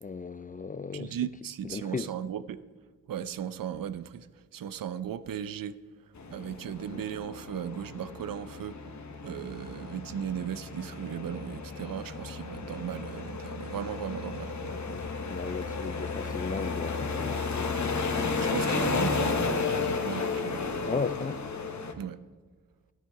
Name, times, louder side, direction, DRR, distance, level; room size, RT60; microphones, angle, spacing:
voice 1, 0.0-1.1 1.6-2.1 6.9-7.0 14.7-17.7 20.9-21.4, left 4 dB, 25° left, 0.4 m, -36 dB
voice 2, 0.9-2.6 3.1-5.8 6.3-8.9 9.2-15.0 18.4-20.6 22.0-22.2, right 9 dB, 90° right, 0.5 m, -37 dB
sound 1, 6.2-21.9, left 4 dB, 55° left, 1.2 m, -33 dB
13.0 x 9.1 x 4.7 m
cardioid pair, 45°, 33 cm